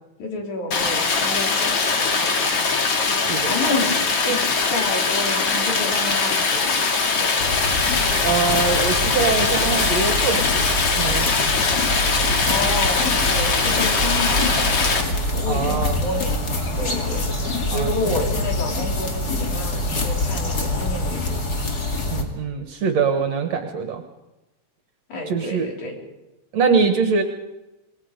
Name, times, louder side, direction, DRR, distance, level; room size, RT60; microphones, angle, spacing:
voice 1, 0.2-2.7 3.5-4.4 4.7-7.4 12.5-14.9 15.3-17.2 17.6-21.4 25.1-25.9, left 2 dB, 75° left, 0 dB, 5.3 m, -30 dB
Stream, 0.7-15.0, left 4 dB, 55° left, 3.2 m, -21 dB
voice 2, 3.1-3.8 8.2-10.7 10.9-11.3 15.5-16.0 17.7-17.9 22.1-24.0 25.3-25.7 26.5-27.2, right 5 dB, 65° right, 5 dB, 2.5 m, -23 dB
sound 1, 7.4-22.2, left 1 dB, 35° left, 2.9 m, -25 dB
27.0 x 20.0 x 5.2 m, 1.0 s
omnidirectional pair, 3.4 m